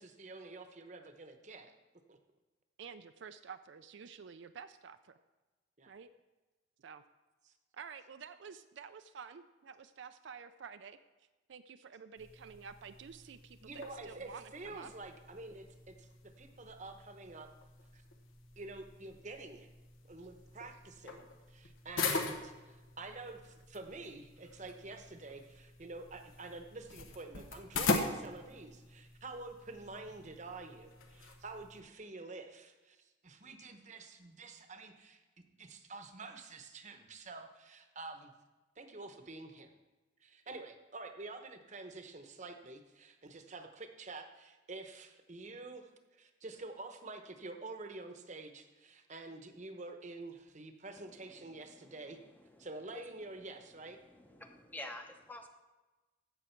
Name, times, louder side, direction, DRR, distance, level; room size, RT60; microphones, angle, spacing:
voice 1, 0.0-1.7 2.1-2.2 5.8-5.9 7.5-7.6 13.6-17.5 17.9-18.0 18.6-19.7 20.1-35.2 35.6-38.3 38.8-39.7 40.2-45.9 46.2-52.2 52.6-54.0, right 3 dB, 35° right, 6 dB, 0.9 m, -48 dB
voice 2, 2.8-5.1 5.9-6.1 6.8-7.0 7.7-11.0 11.5-14.9 20.2-20.3, right 6 dB, 65° right, 10 dB, 0.4 m, -50 dB
sound 1, 12.2-31.8, left 3 dB, 85° left, 1.2 m, -42 dB
voice 3, 51.0-55.5, left 1 dB, 10° left, 4 dB, 0.7 m, -51 dB
15.0 x 6.2 x 4.4 m, 1.2 s
head